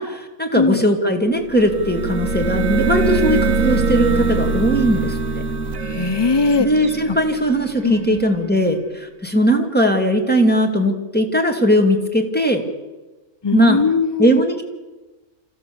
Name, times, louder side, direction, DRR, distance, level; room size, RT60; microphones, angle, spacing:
voice 1, 0.0-5.2 6.6-12.7 13.5-13.8 14.2-14.6, equal, 5° left, 2 dB, 2.3 m, -19 dB
voice 2, 0.5-0.8 5.9-6.7 7.1-7.2 7.8-8.2 13.4-14.4, left 4 dB, 25° left, 15 dB, 0.6 m, -19 dB
sound 1, 1.4-8.2, right 3 dB, 70° right, 1.6 m, -22 dB
26.5 x 15.0 x 7.1 m, 1.1 s
omnidirectional pair, 1.5 m